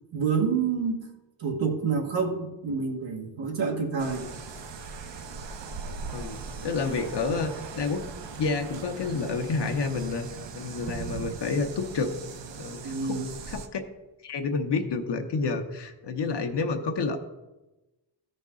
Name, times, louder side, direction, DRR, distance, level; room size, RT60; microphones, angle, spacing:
voice 1, 0.1-1.0 1.4-4.3 12.8-13.3, right 5 dB, 90° right, 2 dB, 1.5 m, -28 dB
sound 1, 4.0-13.7, right 5 dB, 70° right, 0.8 m, -40 dB
voice 2, 6.1-8.0 8.4-10.3 10.5-12.1 12.6-13.8 14.2-17.2, left 4 dB, 65° left, 6 dB, 1.0 m, -29 dB
14.0 x 5.3 x 3.7 m, 1.1 s
wide cardioid pair, 115°, 44 cm